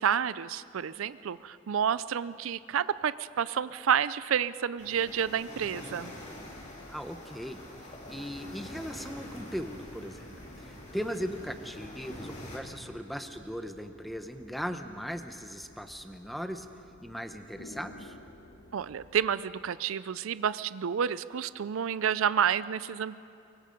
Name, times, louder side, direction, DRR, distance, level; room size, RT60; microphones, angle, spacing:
voice 1, 0.0-6.1 18.7-23.2, right 8 dB, 75° right, 16 dB, 0.4 m, -29 dB
sound 1, 4.8-12.6, left 1 dB, 35° left, 3.5 m, -45 dB
sound 2, 6.0-19.4, left 1 dB, 70° left, 1.4 m, -55 dB
voice 2, 6.9-10.3 10.6-16.7 17.0-18.2, equal, ahead, 7 dB, 0.8 m, -38 dB
24.0 x 23.5 x 5.2 m, 2.7 s
head